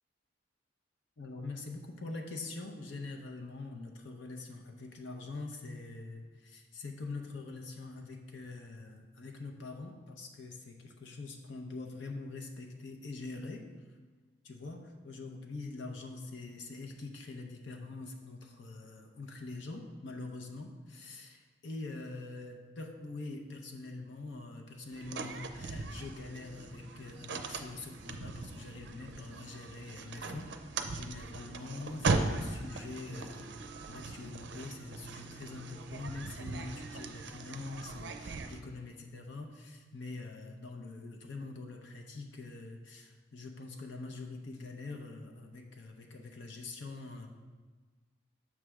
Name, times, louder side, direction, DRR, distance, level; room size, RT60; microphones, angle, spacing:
voice 1, 1.2-13.7 14.4-33.6 33.9-47.3, left 3 dB, 65° left, 2 dB, 0.7 m, -44 dB
sound 1, 24.9-38.6, right 3 dB, 60° right, 0.5 m, -39 dB
7.3 x 3.3 x 6.0 m, 1.4 s
head